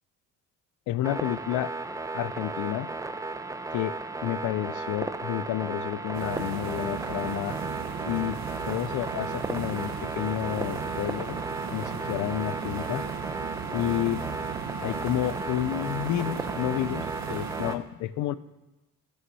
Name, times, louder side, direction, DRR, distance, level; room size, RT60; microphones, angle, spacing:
voice 1, 0.9-1.7 2.1-2.9 3.7-7.6 8.1-11.4 11.7-13.1 13.7-14.3 14.8-18.4, left 13 dB, 80° left, 16 dB, 0.5 m, -30 dB
sound 1, 1.0-17.8, right 3 dB, 10° right, 0.5 m, -35 dB
sound 2, 6.1-17.8, right 7 dB, 65° right, 0.8 m, -36 dB
9.5 x 6.4 x 5.4 m, 1.0 s
cardioid pair, 90°, 30 cm